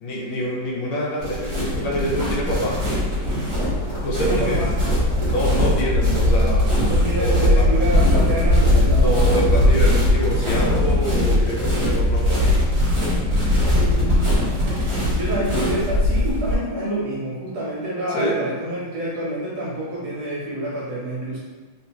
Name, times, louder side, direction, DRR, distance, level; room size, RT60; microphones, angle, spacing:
voice 1, 0.0-2.8 4.0-4.7 4.9-5.0 5.3-6.7 7.2-7.8 8.9-12.5 18.1-18.4, right 1 dB, 75° left, -3 dB, 1.5 m, -26 dB
sound 1, 1.2-16.5, left 1 dB, 35° right, 1.1 m, -19 dB
voice 2, 4.2-4.7 6.9-9.3 13.7-14.2 15.0-21.4, right 1 dB, 60° right, -6 dB, 1.1 m, -27 dB
3.8 x 2.6 x 2.9 m, 1.3 s
omnidirectional pair, 2.3 m